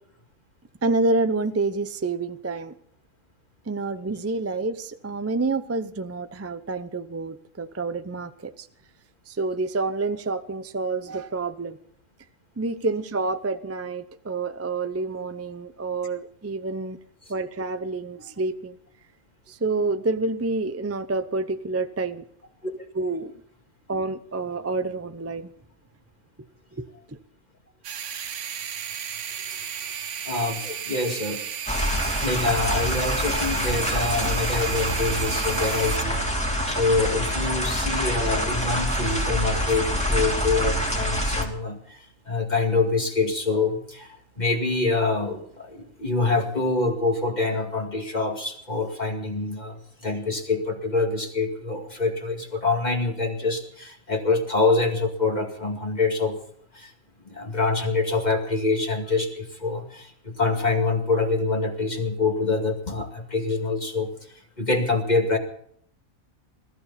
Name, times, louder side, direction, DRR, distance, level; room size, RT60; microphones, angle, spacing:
voice 1, 0.8-2.8 3.7-8.7 9.3-11.8 12.6-17.0 17.3-18.8 19.5-22.2 22.9-23.3 23.9-25.5 26.7-27.2, right 3 dB, 20° right, 0.4 m, -28 dB
sound 1, 27.8-40.2 40.4-40.7 41.4-41.5, right 8 dB, 60° right, 1.1 m, -35 dB
voice 2, 30.2-31.4 32.2-36.2 36.7-42.0 42.3-44.1 44.4-49.8 50.0-56.4 56.8-56.9 57.3-60.1 60.4-64.1 64.6-65.4, left 3 dB, 30° left, 2.4 m, -25 dB
sound 2, 31.7-41.4, equal, 5° left, 2.5 m, -26 dB
21.5 x 14.0 x 4.2 m
omnidirectional pair, 1.5 m